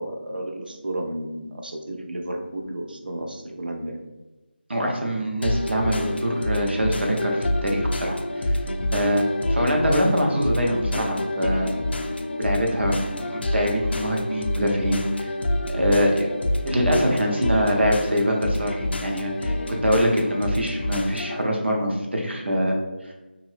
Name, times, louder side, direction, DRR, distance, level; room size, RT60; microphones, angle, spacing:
voice 1, 0.0-4.0, right 1 dB, 60° right, 2 dB, 0.5 m, -32 dB
voice 2, 4.7-8.6 8.9-11.7 12.4-15.3 15.7-16.3 16.6-22.8, equal, 85° right, 1 dB, 0.8 m, -24 dB
sound 1, 5.4-21.4, left 1 dB, 70° left, 0.4 m, -27 dB
2.7 x 2.5 x 3.3 m, 1.1 s
figure-of-eight pair, 175°, 6 cm